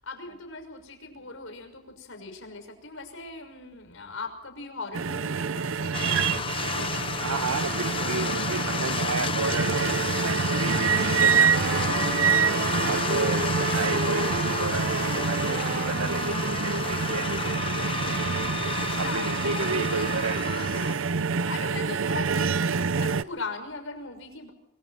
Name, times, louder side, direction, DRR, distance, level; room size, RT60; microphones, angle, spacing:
voice 1, 0.0-7.6 8.1-8.2 18.7-20.3 21.5-24.5, left 3 dB, 60° left, 5 dB, 6.2 m, -39 dB
sound 1, 4.9-23.2, right 5 dB, 60° right, 0.7 m, -27 dB
sound 2, 5.9-21.0, left 5 dB, 25° left, 0.8 m, -31 dB
voice 2, 7.2-17.8 18.9-20.5 21.3-21.7, right 4 dB, 90° right, 13 dB, 1.1 m, -33 dB
sound 3, 10.6-17.4, right 2 dB, 35° right, 1.2 m, -35 dB
25.0 x 24.5 x 4.4 m, 0.85 s
head